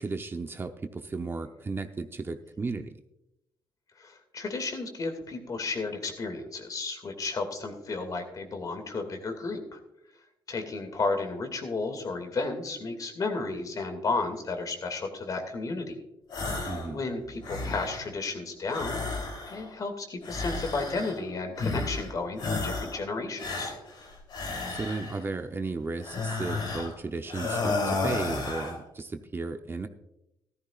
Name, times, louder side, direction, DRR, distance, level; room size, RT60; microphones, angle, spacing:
voice 1, 0.0-2.9 16.7-17.0 24.7-29.9, right 3 dB, 25° right, 7 dB, 0.8 m, -34 dB
voice 2, 4.0-9.8 10.5-16.0 16.6-23.7, left 3 dB, 45° left, 6 dB, 2.3 m, -33 dB
sound 1, 16.3-16.9 17.2-18.1 18.7-19.7 20.2-21.2 21.6-22.1 22.4-23.0 23.4-25.2 26.0-27.0 27.3-28.8, left 3 dB, 65° left, 3.4 m, -32 dB
14.5 x 14.0 x 2.5 m, 0.87 s
cardioid pair, 95°, 8 cm